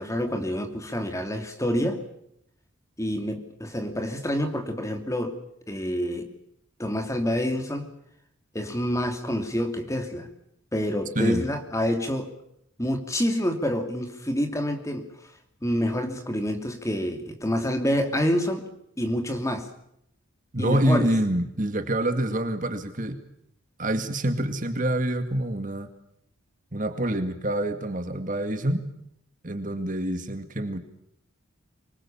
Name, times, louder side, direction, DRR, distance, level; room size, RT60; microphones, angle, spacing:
voice 1, 0.0-2.0 3.0-5.4 5.7-6.3 6.8-7.9 8.5-10.3 10.7-12.3 12.8-15.1 15.6-18.7 19.0-19.7 20.6-21.1, equal, 15° left, 6 dB, 2.7 m, -27 dB
voice 2, 20.5-23.2 23.8-25.9 26.7-28.9 29.4-30.8, right 1 dB, 40° right, 7 dB, 2.2 m, -26 dB
25.0 x 22.5 x 7.3 m, 0.75 s
head